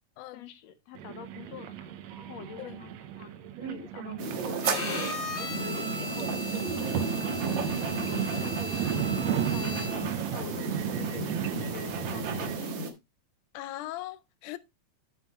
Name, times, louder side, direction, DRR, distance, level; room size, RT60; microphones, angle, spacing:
voice 1, 0.3-1.8 2.2-3.3 3.6-4.7 5.4-7.4 7.9-9.8 10.3-12.8, left 8 dB, 70° left, 1.9 m, -46 dB
sound 1, 1.0-12.6, right 10 dB, 70° right, 1.9 m, -34 dB
sound 2, 4.2-12.9, right 3 dB, 55° right, 1.5 m, -34 dB
Bowed string instrument, 4.6-10.2, left 2 dB, 50° left, 0.8 m, -38 dB
voice 2, 13.5-14.6, left 15 dB, 85° left, 2.2 m, -40 dB
8.9 x 7.3 x 3.0 m
omnidirectional pair, 3.5 m